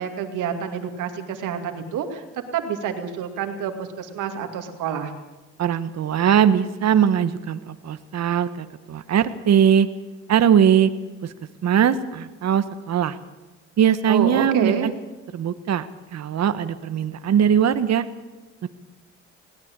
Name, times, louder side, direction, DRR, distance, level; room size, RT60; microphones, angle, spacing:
voice 1, 0.0-2.2 2.5-5.1 14.1-14.9, right 8 dB, 90° right, 6 dB, 2.4 m, -28 dB
voice 2, 5.6-9.9 10.3-10.9 11.6-13.2 13.8-14.9 15.3-15.9 16.1-18.0 18.6-18.7, right 8 dB, 60° right, 11 dB, 1.4 m, -20 dB
21.0 x 17.0 x 8.9 m, 1.1 s
cardioid pair, 90°, 30 cm